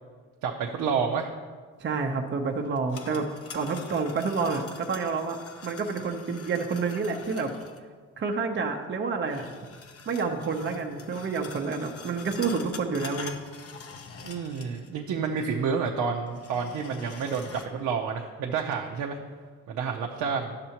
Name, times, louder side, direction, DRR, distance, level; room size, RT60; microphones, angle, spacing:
voice 1, 0.4-1.3 14.2-19.2 19.7-20.6, right 6 dB, 80° right, 1 dB, 0.7 m, -29 dB
voice 2, 1.8-3.3 3.5-5.4 5.6-7.5 8.2-9.4 10.1-13.3, right 4 dB, 40° right, 3 dB, 0.8 m, -29 dB
sound 1, 2.6-7.8 9.3-15.0 15.2-15.3 16.3-17.7, left 5 dB, 50° left, 0.8 m, -45 dB
11.0 x 6.7 x 2.9 m, 1.5 s
cardioid pair, 90°, 30 cm